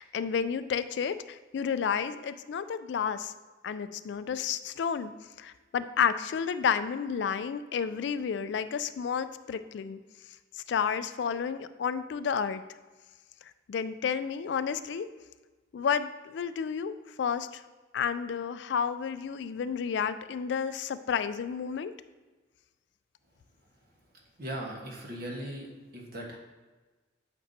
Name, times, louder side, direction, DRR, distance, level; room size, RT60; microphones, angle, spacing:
voice 1, 0.0-3.3 3.6-5.1 5.4-10.0 10.7-12.6 13.7-15.1 15.7-16.9 17.2-17.6 17.9-21.9, left 7 dB, 65° left, 12 dB, 0.3 m, -31 dB
voice 2, 23.6-23.9 24.4-26.4, right 1 dB, 50° right, -1 dB, 1.3 m, -39 dB
8.4 x 5.3 x 2.7 m, 1.3 s
head